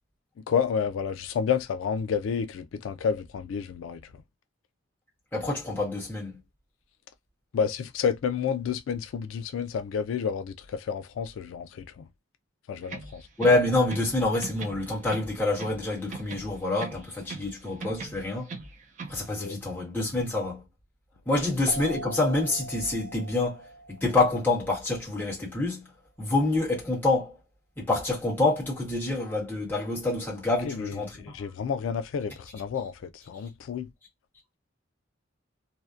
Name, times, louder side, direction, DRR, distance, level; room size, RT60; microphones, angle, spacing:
voice 1, 0.5-4.2 7.5-12.0 12.7-13.3 19.4-19.6 30.7-33.9, left 7 dB, 85° left, 0.3 m, -30 dB
voice 2, 5.3-6.4 13.4-18.5 19.1-20.6 21.3-23.6 23.9-25.8 26.2-27.4 27.8-31.4, left 2 dB, 10° left, 1.0 m, -27 dB
sound 1, 12.8-14.2 14.4-15.8 16.1-17.5 17.8-19.2, right 3 dB, 35° right, 0.4 m, -40 dB
sound 2, 21.7-25.0, right 1 dB, 25° left, 0.6 m, -41 dB
2.6 x 2.1 x 2.3 m
head